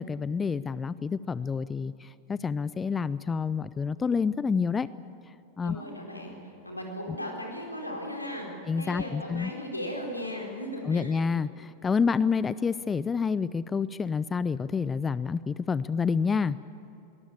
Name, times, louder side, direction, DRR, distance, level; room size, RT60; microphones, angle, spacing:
voice 1, 0.0-4.9 5.6-5.8 8.7-9.5 10.9-16.6, left 5 dB, 15° left, 18 dB, 0.4 m, -28 dB
voice 2, 5.6-6.4 6.6-8.5 8.8-11.2, equal, 85° left, 0 dB, 4.3 m, -36 dB
22.0 x 19.5 x 8.7 m, 2.8 s
figure-of-eight pair, 90°, 0 cm